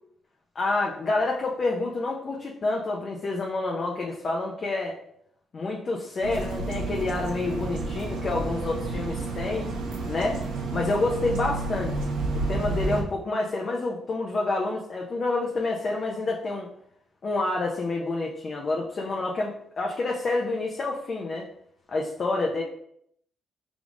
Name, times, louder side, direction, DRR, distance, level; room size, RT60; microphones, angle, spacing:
voice 1, 0.5-5.0 5.5-9.7 10.0-10.4 10.7-11.9 12.5-16.7 17.2-21.5 21.9-22.6, left 2 dB, 45° left, -1 dB, 0.6 m, -28 dB
sound 1, 6.2-13.0, right 3 dB, 90° right, 0.8 m, -30 dB
4.9 x 3.5 x 2.4 m, 0.72 s
cardioid pair, 90°, 0 cm